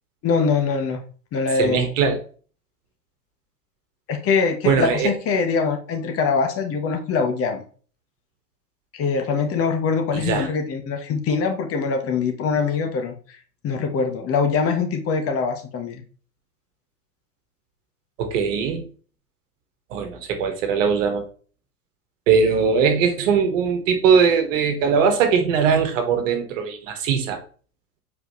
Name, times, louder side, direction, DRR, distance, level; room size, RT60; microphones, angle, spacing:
voice 1, 0.2-1.0 1.3-1.9 4.1-7.6 8.9-13.1 13.6-16.0, left 5 dB, 30° left, 1.3 m, -23 dB
voice 2, 1.6-2.2 4.7-5.1 10.1-10.5 18.2-18.8 19.9-21.2 22.3-27.4, right 6 dB, 50° right, 1.7 m, -20 dB
7.8 x 4.8 x 3.2 m
figure-of-eight pair, 95°, 47 cm